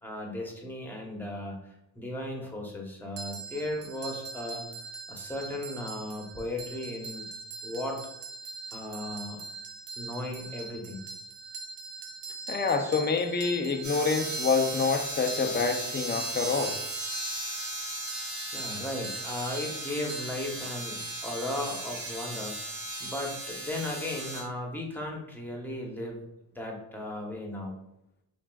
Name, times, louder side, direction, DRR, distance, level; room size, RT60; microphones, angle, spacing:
voice 1, 0.0-4.6 5.1-7.3 7.6-8.0 8.7-9.4 10.0-11.0 18.5-22.6 23.0-26.2 26.5-27.7, left 1 dB, 5° left, 0 dB, 1.0 m, -36 dB
sound 1, 3.2-21.9, right 3 dB, 65° right, 0.7 m, -42 dB
voice 2, 12.5-16.8, left 5 dB, 25° left, 5 dB, 0.5 m, -27 dB
sound 2, 13.8-24.4, right 1 dB, 40° right, 1.3 m, -36 dB
5.7 x 2.4 x 2.3 m, 0.84 s
cardioid pair, 75°, 45 cm